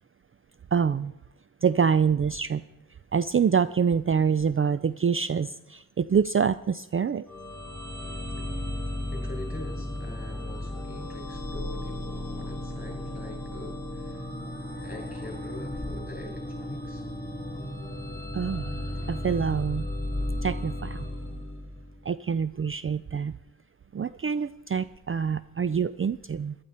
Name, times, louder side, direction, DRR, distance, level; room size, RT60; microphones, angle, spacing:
voice 1, 0.7-1.1 1.6-2.6 3.1-7.3 18.3-18.8 19.1-19.9 20.4-21.1 22.1-23.3 23.9-26.6, right 6 dB, 40° right, 15 dB, 0.4 m, -26 dB
sound 1, 7.3-22.0, left 1 dB, 5° left, 5.1 m, -35 dB
voice 2, 9.1-14.3 14.8-17.0, left 2 dB, 25° left, 0 dB, 6.2 m, -43 dB
15.0 x 12.0 x 4.3 m, 0.88 s
wide cardioid pair, 55°, 35 cm